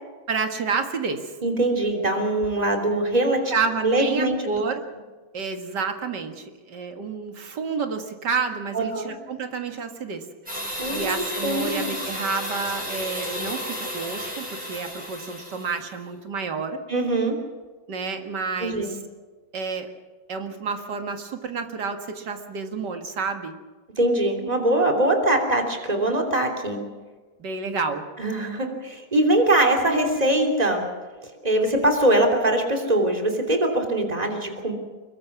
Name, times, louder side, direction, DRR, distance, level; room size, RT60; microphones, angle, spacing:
voice 1, 0.3-1.3 3.5-4.8 5.3-16.8 17.9-18.9 19.5-19.9 20.3-23.5 27.4-28.0, right 5 dB, 60° right, 5 dB, 2.4 m, -29 dB
voice 2, 1.4-3.5 3.8-4.6 8.7-9.1 10.8-11.9 16.9-17.4 18.6-18.9 24.0-26.8 28.2-30.8 31.4-34.7, right 1 dB, 20° right, 3 dB, 3.1 m, -22 dB
sound 1, 10.5-15.9, equal, 5° right, 7.9 m, -32 dB
24.5 x 22.0 x 6.0 m, 1.4 s
omnidirectional pair, 2.1 m